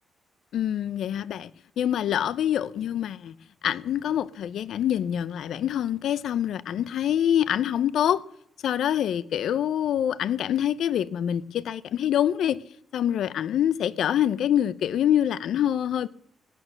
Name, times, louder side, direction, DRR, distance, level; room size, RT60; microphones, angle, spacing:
voice 1, 0.5-1.5 1.8-3.3 3.6-8.2 8.6-12.6 12.9-16.1, left 10 dB, 75° left, 0.6 m, -25 dB
15.5 x 9.1 x 6.4 m
cardioid pair, 145°, 0 cm